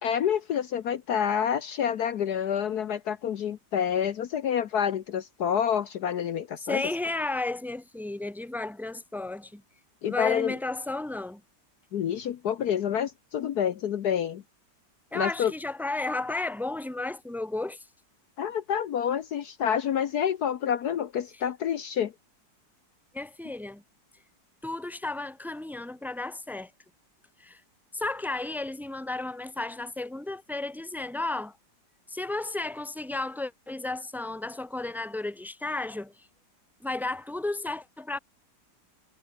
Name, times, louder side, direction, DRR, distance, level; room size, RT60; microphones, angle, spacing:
voice 1, 0.0-6.8 10.0-10.5 11.9-14.4 15.1-15.5 18.4-22.1, left 8 dB, 65° left, 1.3 m, -28 dB
voice 2, 6.6-9.6 10.0-11.4 15.1-17.8 23.1-23.8 24.6-26.7 27.4-27.6 27.9-31.5 32.1-36.1 36.8-38.2, left 2 dB, ahead, 1.6 m, -33 dB
omnidirectional pair, 2.0 m